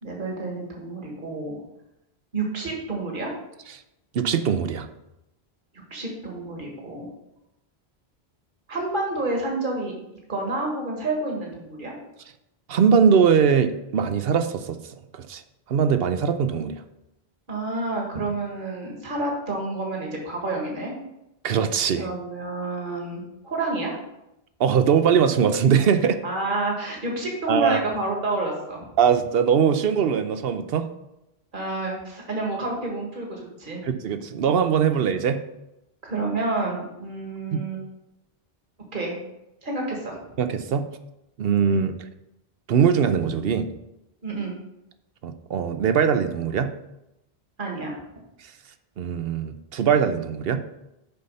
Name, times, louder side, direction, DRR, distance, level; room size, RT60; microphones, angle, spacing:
voice 1, 0.0-1.6 2.3-3.3 5.9-7.1 8.7-9.9 10.3-11.9 17.5-20.9 22.0-24.0 26.2-28.9 31.5-33.8 36.0-37.8 38.9-39.2 39.6-40.2 41.7-41.9 44.2-44.5 47.6-47.9, right 2 dB, 50° right, -1 dB, 1.8 m, -29 dB
voice 2, 4.1-4.9 12.7-14.8 15.1-15.4 15.7-16.8 21.4-22.1 24.6-26.2 27.5-27.8 29.0-30.9 33.8-35.4 37.5-37.6 40.4-40.8 41.4-42.0 42.7-43.7 45.2-46.7 49.0-50.6, right 7 dB, 70° right, 9 dB, 0.8 m, -21 dB
6.9 x 5.6 x 5.4 m, 0.89 s
omnidirectional pair, 1.1 m